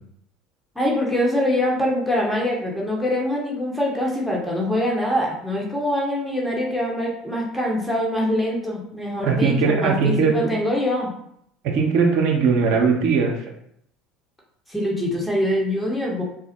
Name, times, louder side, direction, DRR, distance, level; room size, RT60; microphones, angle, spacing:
voice 1, 0.7-11.1 14.7-16.2, left 1 dB, 5° left, -3 dB, 1.1 m, -24 dB
voice 2, 9.2-10.5 11.6-13.3, right 5 dB, 60° right, 2 dB, 0.7 m, -19 dB
3.8 x 2.1 x 4.3 m, 0.71 s
hypercardioid pair, 70°, 0 cm